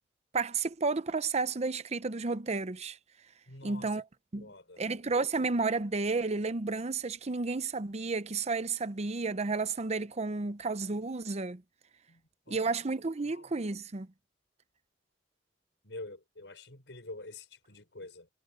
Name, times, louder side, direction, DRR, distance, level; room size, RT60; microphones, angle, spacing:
voice 1, 0.3-3.0 3.6-4.0 4.3-4.5 4.8-11.6 12.5-14.1, right 3 dB, 40° right, 0.7 m, -32 dB
voice 2, 3.5-4.0 4.4-5.0 12.1-12.8 13.2-13.5 15.8-18.3, left 2 dB, 80° left, 5.2 m, -47 dB
head